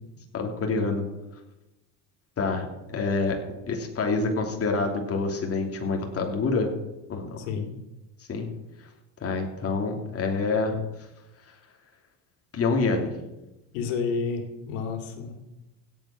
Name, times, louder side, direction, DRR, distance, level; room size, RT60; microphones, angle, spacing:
voice 1, 0.3-1.1 2.4-3.4 3.7-6.7 7.1-7.5 8.3-8.5 9.2-10.8 12.5-13.2, left 3 dB, 35° left, 2 dB, 3.1 m, -27 dB
voice 2, 7.4-7.7 13.7-15.4, left 5 dB, 85° left, 4 dB, 2.8 m, -30 dB
16.5 x 8.2 x 6.0 m, 1.0 s
supercardioid pair, 105°, 41 cm